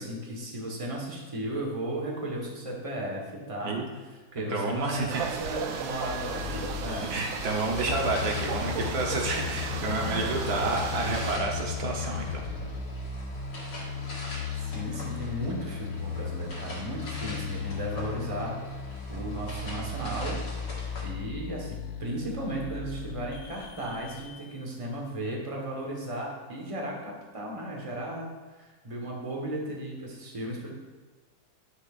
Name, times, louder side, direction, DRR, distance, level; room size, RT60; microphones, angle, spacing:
voice 1, 0.0-3.8 4.3-7.1 8.6-8.8 10.0-10.4 14.6-20.6 21.0-28.3 28.6-30.7, right 1 dB, 20° right, -2 dB, 1.1 m, -35 dB
voice 2, 4.5-5.2 7.1-12.4, right 3 dB, 60° right, 0 dB, 1.3 m, -30 dB
sound 1, 4.6-21.0, left 1 dB, 55° left, 2.1 m, -44 dB
sound 2, 5.1-11.4, right 6 dB, 80° right, 0.7 m, -35 dB
sound 3, 6.1-24.6, left 5 dB, 75° left, 1.3 m, -36 dB
9.6 x 6.4 x 2.5 m, 1.3 s
omnidirectional pair, 2.1 m